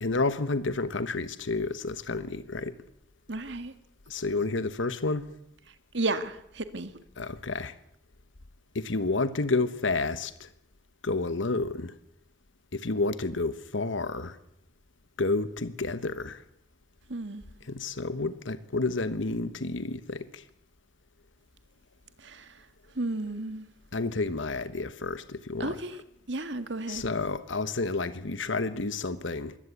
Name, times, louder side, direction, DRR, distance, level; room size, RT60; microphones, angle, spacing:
voice 1, 0.0-2.8 4.1-5.3 7.2-7.7 8.7-10.5 11.0-11.9 12.7-14.4 15.2-16.4 17.7-20.4 23.9-25.8 26.9-29.6, left 3 dB, 80° left, 1.2 m, -30 dB
voice 2, 3.3-3.7 5.9-6.9 17.1-17.4 22.2-22.7 23.0-23.6 25.6-26.0 26.3-27.1, right 2 dB, 70° right, 1.9 m, -33 dB
22.5 x 18.0 x 8.4 m
head